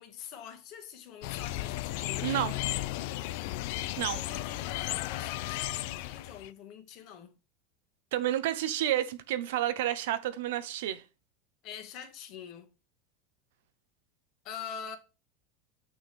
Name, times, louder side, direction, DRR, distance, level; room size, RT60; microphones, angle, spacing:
voice 1, 0.0-2.5 4.1-7.3 11.6-12.7 14.4-15.0, left 8 dB, 50° left, 1.5 m, -45 dB
sound 1, 1.2-6.5, left 16 dB, 70° left, 0.4 m, -34 dB
voice 2, 2.2-2.5 4.0-4.2 8.1-11.0, right 12 dB, 80° right, 0.7 m, -30 dB
6.2 x 3.3 x 5.9 m
supercardioid pair, 115°, 0 cm